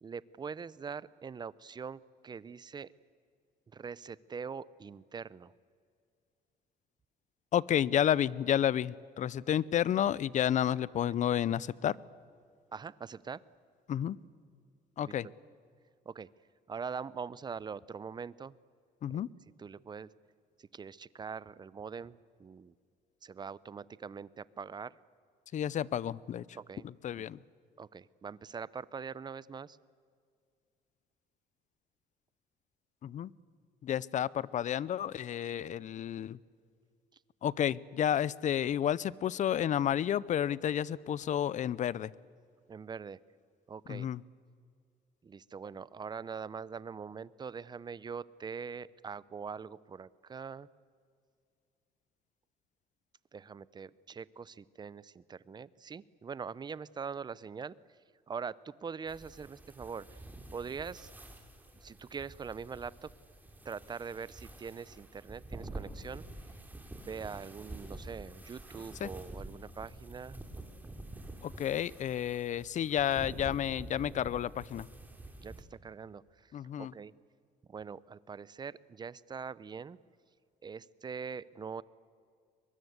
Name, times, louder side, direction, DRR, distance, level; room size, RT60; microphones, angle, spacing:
voice 1, 0.0-2.9 3.7-5.5 12.7-13.4 15.0-15.3 16.1-16.3 16.7-18.5 19.1-19.3 19.6-20.1 20.6-22.7 23.2-25.0 26.5-26.9 27.2-27.3 27.8-29.8 42.7-43.2 43.7-44.1 45.2-50.7 53.3-57.8 58.3-60.2 60.5-61.1 61.8-63.1 63.6-66.2 67.1-70.4 75.4-76.5 76.8-77.1 77.7-80.0 80.6-81.8, right 6 dB, 25° right, 20 dB, 0.6 m, -43 dB
voice 2, 7.5-11.9 13.9-14.2 15.0-15.3 19.0-19.3 25.5-26.4 27.0-27.4 33.0-33.3 33.8-36.4 37.4-42.1 43.9-44.2 69.0-69.1 71.4-74.9 76.5-76.9, left 10 dB, 45° left, 22 dB, 0.6 m, -31 dB
sound 1, 59.1-75.6, right 2 dB, 10° right, 3.0 m, -48 dB
23.0 x 22.0 x 8.1 m, 2.2 s
cardioid pair, 110°, 17 cm